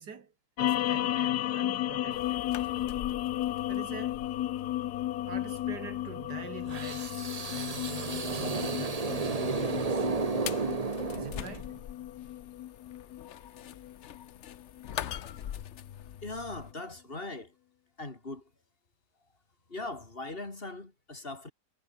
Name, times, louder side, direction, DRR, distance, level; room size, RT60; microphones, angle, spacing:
voice 1, 0.0-2.4 3.7-4.2 5.3-7.2 7.5-10.1 11.1-11.8, right 6 dB, 80° right, 2.8 m, -45 dB
sound 1, 0.6-15.1, left 13 dB, 75° left, 1.2 m, -34 dB
sound 2, 2.1-16.7, left 10 dB, 55° left, 0.9 m, -44 dB
sound 3, 6.7-11.8, right 4 dB, 25° right, 1.1 m, -32 dB
voice 2, 16.2-17.5 18.0-18.5 19.7-21.5, left 2 dB, 35° left, 3.5 m, -40 dB
omnidirectional pair, 1.8 m